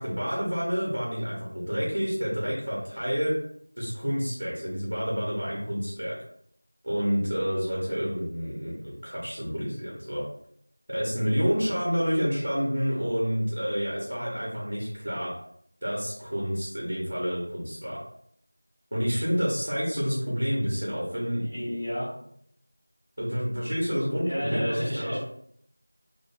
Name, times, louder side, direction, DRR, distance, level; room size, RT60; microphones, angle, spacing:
voice 1, 0.0-3.3 3.8-6.1 6.8-10.2 10.9-15.3 15.8-18.0 18.9-21.4 23.2-25.2, equal, 45° right, -5 dB, 0.7 m, -29 dB
voice 2, 21.4-22.1 24.2-25.2, equal, 10° left, -14 dB, 0.4 m, -31 dB
2.5 x 2.2 x 2.5 m, 0.69 s
figure-of-eight pair, 175°, 0 cm